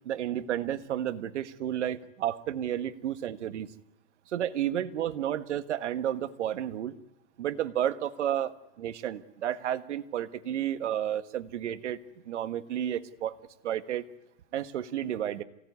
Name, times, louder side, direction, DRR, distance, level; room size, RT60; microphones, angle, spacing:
voice 1, 0.0-3.7 4.3-6.9 7.4-12.0 12.2-13.3 13.6-14.0 14.5-15.4, right 11 dB, 65° right, 9 dB, 1.6 m, -31 dB
27.0 x 17.5 x 9.7 m, 0.94 s
hypercardioid pair, 160°, 38 cm